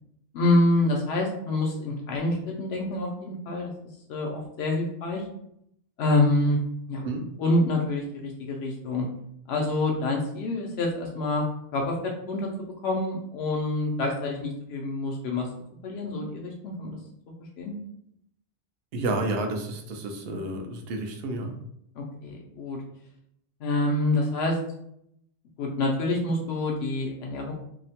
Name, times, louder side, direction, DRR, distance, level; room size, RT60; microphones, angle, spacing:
voice 1, 0.3-3.7 4.1-5.2 6.0-6.6 6.9-7.0 7.4-9.1 9.5-11.5 11.7-15.5 15.8-17.0 17.6-17.7 22.0-22.8 23.6-24.6 25.6-27.5, left 2 dB, 90° left, 0 dB, 0.8 m, -27 dB
voice 2, 18.9-21.5, right 2 dB, 75° right, 3 dB, 0.8 m, -30 dB
2.8 x 2.0 x 2.8 m, 0.73 s
omnidirectional pair, 1.0 m